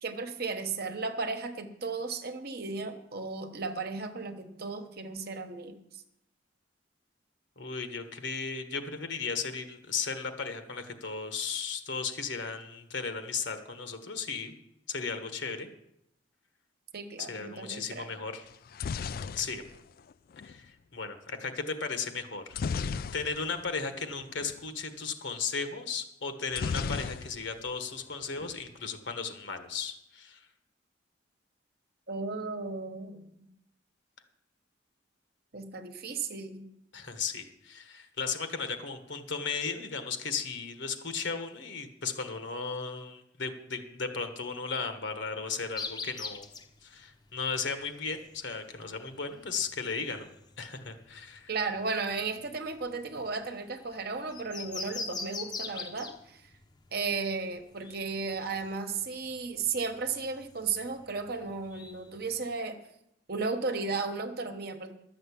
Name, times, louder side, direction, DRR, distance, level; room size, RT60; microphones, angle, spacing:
voice 1, 0.0-6.0 16.9-18.1 32.1-33.5 35.5-36.7 51.5-56.4 56.9-62.8 63.3-64.9, right 4 dB, 55° right, 7 dB, 1.1 m, -35 dB
voice 2, 7.6-14.5 14.9-15.7 17.2-18.5 19.3-19.6 20.4-22.6 23.1-30.5 36.9-46.5 46.8-50.3 50.6-51.5, left 5 dB, 65° left, 8 dB, 1.3 m, -35 dB
sound 1, 18.5-20.6 22.5-23.7 24.0-24.1 24.4-24.6 26.5-27.7 28.0-28.6, left 5 dB, 50° left, 0.3 m, -35 dB
sound 2, 45.8-62.5, left 4 dB, 20° left, 0.8 m, -45 dB
12.0 x 6.6 x 8.3 m, 0.81 s
head